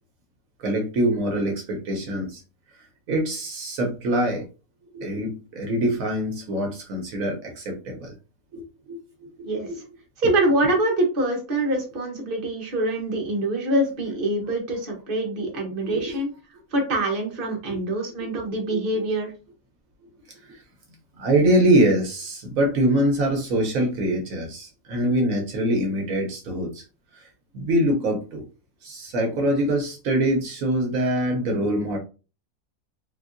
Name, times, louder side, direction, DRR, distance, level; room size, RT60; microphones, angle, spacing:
voice 1, 0.6-2.4 3.1-4.5 4.9-8.1 8.5-9.9 10.6-10.7 15.8-16.2 17.7-17.8 18.2-18.3 18.7-19.0 20.4-20.6 21.2-26.8 27.1-27.3 27.5-28.4 28.8-32.0, right 1 dB, 75° right, 2 dB, 1.2 m, -24 dB
voice 2, 10.2-16.3 16.7-19.3, right 1 dB, 45° right, 0 dB, 1.1 m, -25 dB
3.6 x 2.6 x 2.5 m, 0.33 s
omnidirectional pair, 1.5 m